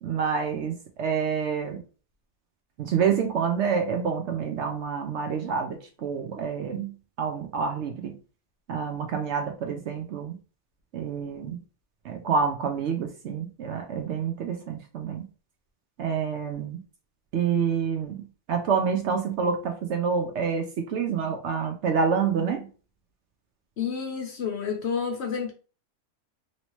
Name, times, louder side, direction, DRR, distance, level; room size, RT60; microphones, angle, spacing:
voice 1, 0.0-1.8 2.8-8.2 8.7-10.4 10.9-11.6 12.0-15.2 16.0-16.8 17.3-22.7, right 6 dB, 65° right, 0.7 m, -28 dB
voice 2, 23.8-25.5, left 6 dB, 60° left, 0.8 m, -29 dB
3.0 x 2.8 x 2.9 m
omnidirectional pair, 1.5 m